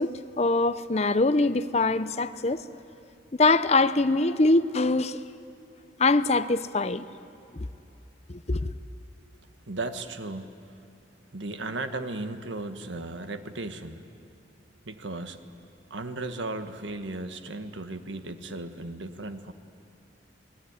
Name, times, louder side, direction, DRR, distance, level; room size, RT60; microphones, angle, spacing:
voice 1, 0.0-2.6 3.4-5.2 6.0-7.1 7.5-7.7 8.3-8.7, left 3 dB, 35° left, 0.7 m, -23 dB
voice 2, 9.7-10.7 11.3-14.0 14.8-15.4 15.9-19.5, right 2 dB, 80° right, 1.5 m, -36 dB
27.0 x 19.5 x 9.7 m
head